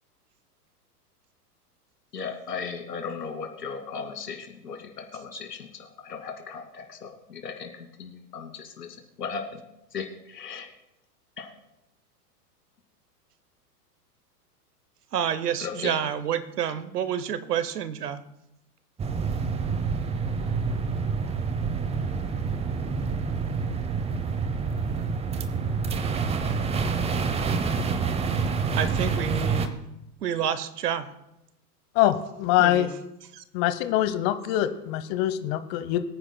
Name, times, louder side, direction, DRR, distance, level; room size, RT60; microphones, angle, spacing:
voice 1, 2.1-8.9 9.2-9.4 9.9-10.7 11.4-11.5 15.6-15.9, left 5 dB, 80° left, 3 dB, 2.5 m, -36 dB
voice 2, 15.1-18.2 28.7-29.8 30.2-31.1 32.6-32.9 33.3-33.4, right 9 dB, 75° right, 14 dB, 1.1 m, -29 dB
sound 1, 19.0-29.7, right 5 dB, 15° right, 0.7 m, -27 dB
voice 3, 31.9-32.9 33.5-36.0, left 13 dB, 40° left, 12 dB, 0.9 m, -24 dB
23.0 x 9.7 x 2.2 m, 0.87 s
hypercardioid pair, 105°, 47 cm